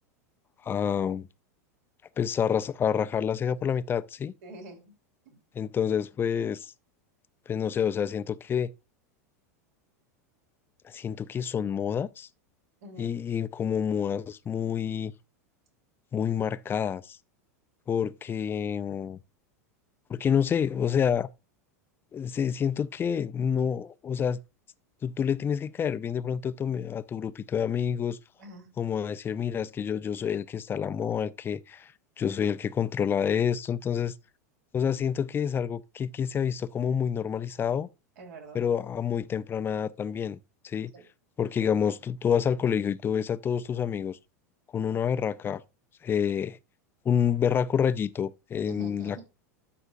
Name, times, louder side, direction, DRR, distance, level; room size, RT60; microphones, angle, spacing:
voice 1, 0.6-1.3 2.2-4.3 5.5-6.7 7.5-8.7 10.8-12.3 13.0-15.1 16.1-17.2 17.9-19.2 20.1-21.3 22.1-24.4 25.0-28.2 28.8-34.1 34.7-37.9 38.5-40.4 40.6-40.9 41.4-44.2 44.7-45.6 46.0-46.6 47.0-49.2, left 8 dB, 25° left, 0.5 m, -28 dB
voice 2, 4.4-4.8 5.2-5.4 12.8-13.1 28.4-28.7 38.2-38.6 40.9-41.0 48.7-49.2, right 1 dB, 70° right, 3.3 m, -45 dB
12.5 x 5.4 x 2.6 m
hypercardioid pair, 100°, 9 cm